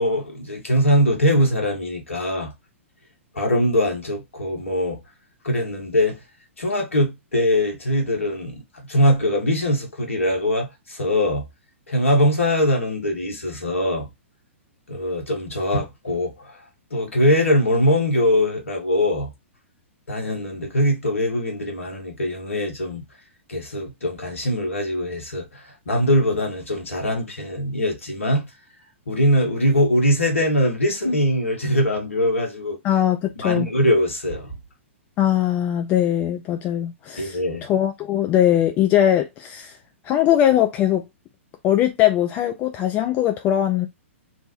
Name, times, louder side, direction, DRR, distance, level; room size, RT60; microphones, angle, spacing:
voice 1, 0.0-2.5 3.3-5.0 5.4-6.2 6.6-11.4 11.9-14.1 14.9-16.6 16.9-19.3 20.1-23.0 23.5-28.5 29.1-32.8 33.4-34.5 37.2-37.7, equal, 70° left, 1.2 m, -22 dB
voice 2, 32.8-33.7 35.2-39.8 40.0-41.0 41.6-43.9, left 11 dB, 25° left, 0.3 m, -20 dB
3.1 x 2.1 x 3.0 m
figure-of-eight pair, 110°, 7 cm